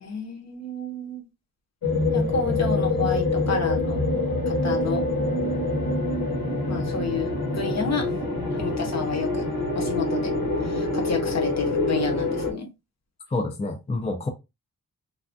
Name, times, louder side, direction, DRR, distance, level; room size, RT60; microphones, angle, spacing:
voice 1, 0.0-1.2 2.1-4.0 4.5-5.0 6.7-8.1 8.6-9.5 9.7-10.3 10.6-12.7, left 5 dB, 45° left, 0.8 m, -30 dB
sound 1, 1.8-12.5, left 2 dB, 75° left, 1.1 m, -25 dB
voice 2, 13.3-14.3, left 2 dB, 20° left, 0.4 m, -28 dB
3.3 x 2.2 x 2.5 m
wide cardioid pair, 155°, 36 cm